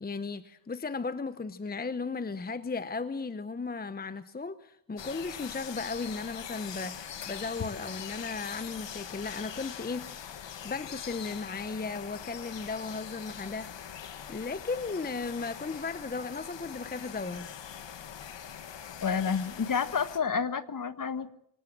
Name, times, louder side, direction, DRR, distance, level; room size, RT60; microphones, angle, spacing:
voice 1, 0.0-10.1 10.4-13.9 14.3-17.5, left 4 dB, 20° left, 14 dB, 0.8 m, -36 dB
sound 1, 5.0-20.2, left 8 dB, 65° left, 2.0 m, -43 dB
voice 2, 19.0-21.3, left 6 dB, 40° left, 13 dB, 1.5 m, -29 dB
25.0 x 19.0 x 7.6 m, 0.73 s
cardioid pair, 105°, 48 cm